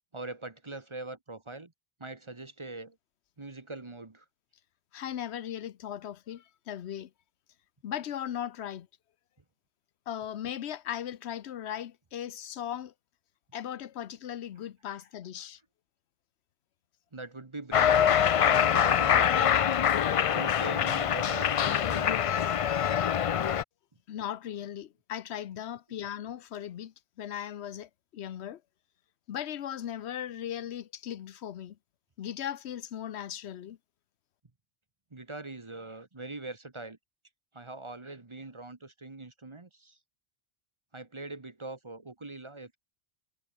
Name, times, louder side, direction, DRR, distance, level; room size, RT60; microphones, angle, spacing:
voice 1, 0.1-1.7 2.0-3.0 3.4-4.2 14.9-15.0 17.1-18.1 18.4-19.5 20.3-22.3 35.1-37.0 37.5-40.0 40.9-42.8, right 2 dB, 30° right, 1.2 m, -42 dB
voice 2, 4.9-7.1 7.8-8.9 10.1-12.9 13.5-15.6 24.1-28.6 29.3-31.8 32.2-33.8, left 10 dB, 90° left, 1.0 m, -38 dB
Cheering, 17.7-23.6, left 9 dB, 60° left, 0.3 m, -24 dB
omnidirectional pair, 1.1 m